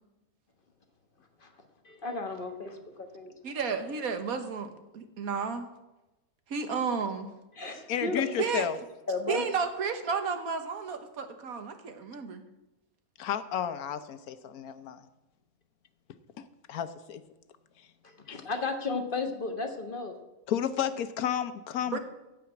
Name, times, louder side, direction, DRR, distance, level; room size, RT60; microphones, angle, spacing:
voice 1, 1.8-3.3 7.6-8.2 9.1-9.4 18.0-20.1, left 3 dB, 40° left, 5 dB, 1.5 m, -34 dB
voice 2, 3.4-5.7 6.5-7.3 8.4-8.7 9.3-12.4 21.9-22.0, right 5 dB, 80° right, 7 dB, 1.6 m, -32 dB
voice 3, 7.9-8.8 13.2-15.1 16.4-17.2 18.3-18.4 20.5-22.0, left 9 dB, 85° left, 12 dB, 1.3 m, -32 dB
15.0 x 5.1 x 8.6 m, 0.99 s
omnidirectional pair, 1.5 m